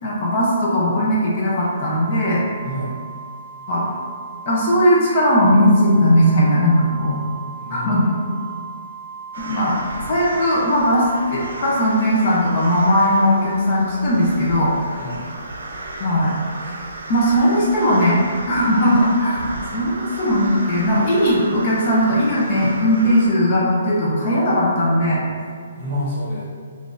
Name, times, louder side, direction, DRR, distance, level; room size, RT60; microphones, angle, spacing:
voice 1, 0.0-2.4 3.7-3.9 4.5-7.2 7.7-8.1 9.5-9.8 10.1-14.7 16.0-16.3 17.1-18.2 18.5-19.5 19.7-25.2, equal, 30° left, -5 dB, 0.4 m, -18 dB
Organ, 1.6-12.3, right 5 dB, 70° left, 1.0 m, -37 dB
voice 2, 2.6-2.9 7.6-8.4 15.0-15.3 19.6-19.9 25.8-26.4, equal, 30° right, -7 dB, 0.8 m, -29 dB
sound 1, 9.3-23.3, right 2 dB, 80° right, 0.5 m, -34 dB
3.6 x 2.3 x 2.5 m, 2.1 s
hypercardioid pair, 175°, 0 cm